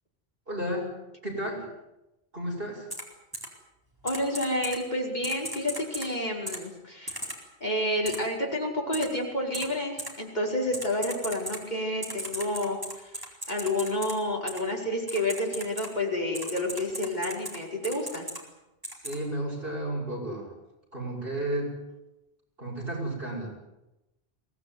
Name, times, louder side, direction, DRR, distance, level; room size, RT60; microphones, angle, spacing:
voice 1, 0.5-0.9 1.2-1.7 2.3-2.9 19.0-20.5 20.9-21.7 22.6-23.5, right 1 dB, 60° right, -1 dB, 7.7 m, -32 dB
Typing, 2.9-3.0 3.3-3.5 4.1-4.8 5.2-6.1 6.5-6.6 7.1-7.4 8.0-8.2 8.9-9.0 9.5-9.7 10.0-10.1 10.7-11.6 12.0-14.1 14.5-14.6 15.1-15.9 16.3-17.6 17.8-18.4 18.8-19.1, equal, 20° right, 4.4 m, -36 dB
voice 2, 4.0-7.2 7.6-13.1 13.5-18.3, left 1 dB, 45° left, -1 dB, 5.5 m, -29 dB
23.0 x 18.0 x 9.7 m, 0.95 s
omnidirectional pair, 1.1 m